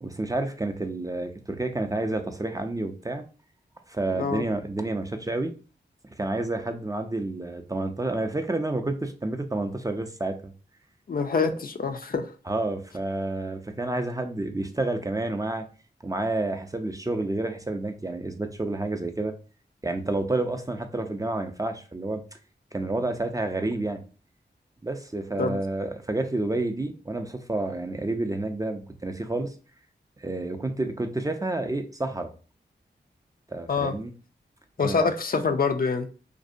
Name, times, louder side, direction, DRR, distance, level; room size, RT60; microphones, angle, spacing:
voice 1, 0.0-3.2 3.9-5.5 6.2-10.5 12.5-15.6 16.0-19.3 19.8-22.2 22.7-24.0 24.8-29.5 30.2-32.3 33.5-34.1 34.8-35.1, right 2 dB, 20° right, 5 dB, 0.4 m, -29 dB
voice 2, 11.1-12.3 25.4-25.6 33.7-33.9 34.8-36.1, left 4 dB, 50° left, 7 dB, 0.4 m, -25 dB
2.6 x 2.1 x 2.5 m, 0.36 s
cardioid pair, 40°, 19 cm